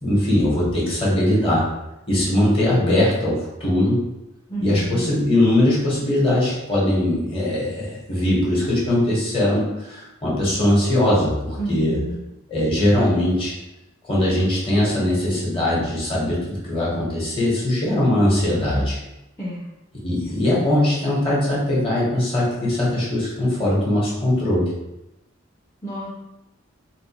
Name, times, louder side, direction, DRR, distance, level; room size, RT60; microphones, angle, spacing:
voice 1, 0.0-1.6 2.1-4.0 4.6-12.0 12.5-13.5 14.1-19.0 20.0-24.7, left 1 dB, 30° left, -6 dB, 1.2 m, -20 dB
voice 2, 4.5-5.1 11.6-12.2 19.4-19.7 20.2-20.3 25.8-26.1, equal, 10° left, -9 dB, 0.6 m, -30 dB
4.0 x 2.2 x 2.9 m, 0.92 s
head